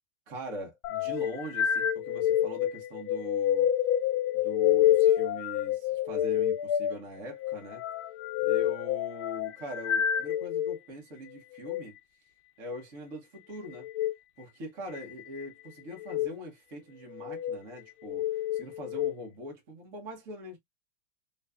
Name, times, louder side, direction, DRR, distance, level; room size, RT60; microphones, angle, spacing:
voice 1, 0.3-3.7 4.3-7.8 8.4-12.0 12.6-13.9 14.4-20.6, equal, 40° right, 1.6 m, -42 dB
sound 1, 0.8-10.8 11.5-11.8 13.8-14.1 15.0-15.5 16.0-16.3 17.1-17.6 18.1-19.1, left 11 dB, 85° left, 1.5 m, -28 dB
4.1 x 3.1 x 2.3 m
omnidirectional pair, 2.3 m